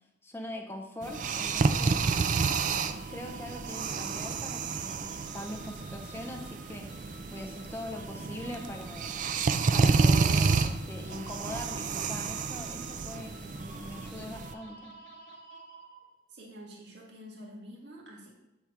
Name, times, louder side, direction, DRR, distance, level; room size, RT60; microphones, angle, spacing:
voice 1, 0.2-2.0 3.1-9.1 9.7-14.9, left 1 dB, 10° left, 2 dB, 0.6 m, -42 dB
sound 1, 1.0-14.5, right 4 dB, 40° right, 0.3 m, -30 dB
sound 2, 1.1-16.3, right 1 dB, 70° left, 1.2 m, -51 dB
voice 2, 16.3-18.3, equal, 65° right, -3 dB, 1.9 m, -47 dB
8.0 x 4.3 x 4.7 m, 0.93 s
head